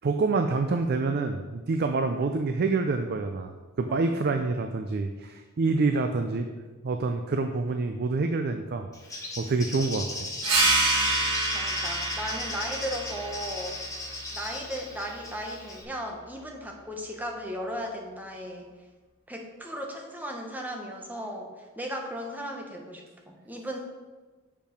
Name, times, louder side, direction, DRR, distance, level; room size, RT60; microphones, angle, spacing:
voice 1, 0.0-3.5 3.8-8.9 9.4-10.3, right 3 dB, 50° right, 6 dB, 0.4 m, -27 dB
Bird, 8.9-15.8, left 2 dB, 15° left, 1.1 m, -37 dB
sound 1, 10.4-15.6, right 2 dB, 80° right, 1.4 m, -28 dB
voice 2, 11.5-13.8 14.3-18.7 19.3-21.5 21.8-23.8, equal, 10° right, 1 dB, 0.9 m, -36 dB
6.8 x 5.3 x 5.1 m, 1.3 s
head